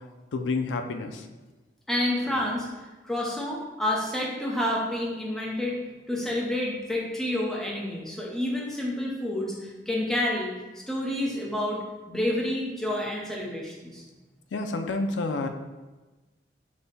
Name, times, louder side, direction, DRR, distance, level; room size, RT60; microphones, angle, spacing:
voice 1, 0.3-1.3 14.5-15.5, left 3 dB, 85° left, 6 dB, 0.4 m, -29 dB
voice 2, 1.9-5.8 6.1-10.5 10.9-14.0, left 1 dB, ahead, -4 dB, 0.8 m, -29 dB
5.2 x 2.2 x 4.0 m, 1.2 s
head